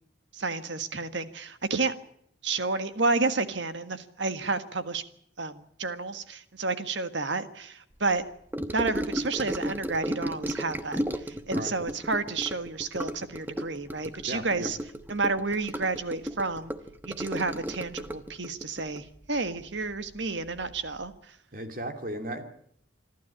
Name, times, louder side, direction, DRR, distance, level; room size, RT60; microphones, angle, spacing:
voice 1, 0.3-1.9 2.4-5.0 5.4-8.3 8.7-14.8 15.1-16.7 17.0-21.4, right 3 dB, 70° right, 11 dB, 1.6 m, -30 dB
Gurgling / Sink (filling or washing) / Trickle dribble, 8.5-20.2 20.4-20.8 21.0-21.1, equal, 10° right, 1.1 m, -34 dB
voice 2, 14.3-14.7 21.5-22.4, right 1 dB, 45° right, 7 dB, 2.6 m, -35 dB
27.0 x 12.5 x 10.0 m, 0.68 s
head